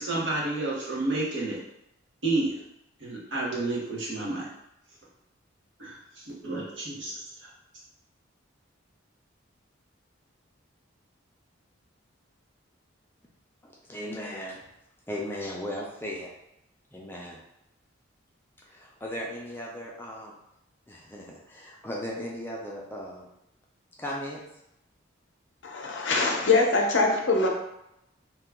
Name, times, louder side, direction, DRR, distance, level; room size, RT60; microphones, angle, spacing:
voice 1, 0.0-1.6 2.2-2.6 3.0-4.5 5.8-6.0 6.3-7.1 7.4-7.5, right 2 dB, 65° right, -6 dB, 1.0 m, -30 dB
voice 2, 13.6-14.6 15.1-16.3 16.9-17.4 18.6-20.4 20.9-23.3 24.0-24.4, equal, 10° left, -3 dB, 0.4 m, -37 dB
voice 3, 25.6-27.5, left 3 dB, 70° left, 2 dB, 0.6 m, -23 dB
2.8 x 2.3 x 3.4 m, 0.83 s
head